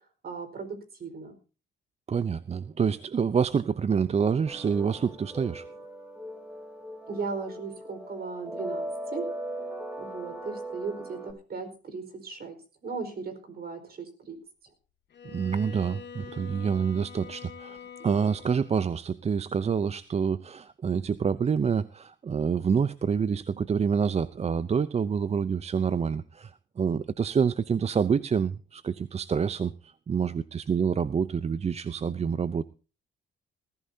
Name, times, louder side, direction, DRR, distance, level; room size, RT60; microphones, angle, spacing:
voice 1, 0.2-1.3 7.1-8.9 9.1-9.3 10.0-14.4, right 4 dB, 50° right, 8 dB, 4.7 m, -37 dB
voice 2, 2.1-5.7 15.3-32.6, right 6 dB, 35° right, 15 dB, 0.6 m, -27 dB
sound 1, 4.5-11.3, right 1 dB, 5° right, 3.8 m, -39 dB
Bowed string instrument, 15.1-18.8, left 7 dB, 60° left, 2.7 m, -45 dB
20.0 x 14.5 x 2.8 m, 0.35 s
cardioid pair, 90°, 20 cm